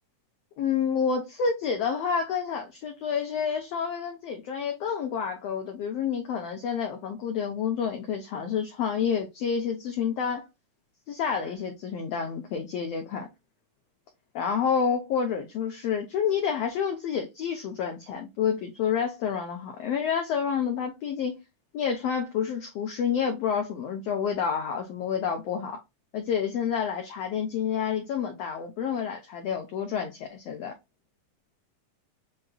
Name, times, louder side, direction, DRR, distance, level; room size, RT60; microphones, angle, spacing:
voice 1, 0.6-10.5 11.1-13.3 14.3-21.4 21.7-25.8 26.1-30.7, left 7 dB, 80° left, 1.4 m, -29 dB
7.6 x 2.6 x 2.3 m
omnidirectional pair, 3.8 m